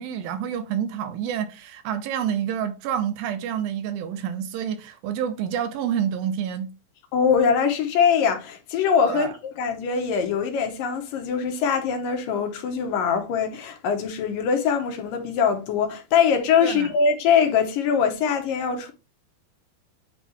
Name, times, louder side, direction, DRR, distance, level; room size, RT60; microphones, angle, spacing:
voice 1, 0.0-6.7 9.1-9.3 16.6-16.9, right 9 dB, 80° right, 2.6 m, -28 dB
voice 2, 7.1-18.9, left 6 dB, 75° left, 2.5 m, -22 dB
9.0 x 4.2 x 3.1 m
omnidirectional pair, 4.3 m